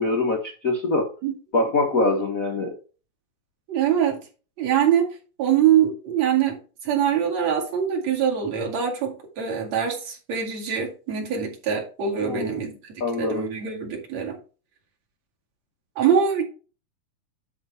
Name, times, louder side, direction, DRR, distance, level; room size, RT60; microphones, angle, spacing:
voice 1, 0.0-1.1 1.5-2.7 12.2-12.6 13.0-13.4, left 2 dB, 55° left, 2 dB, 0.9 m, -24 dB
voice 2, 3.7-4.2 4.6-5.1 5.4-6.6 6.8-12.7 13.2-14.4 16.0-16.4, right 8 dB, 50° right, 0 dB, 3.1 m, -23 dB
10.5 x 5.1 x 4.2 m, 0.35 s
omnidirectional pair, 4.1 m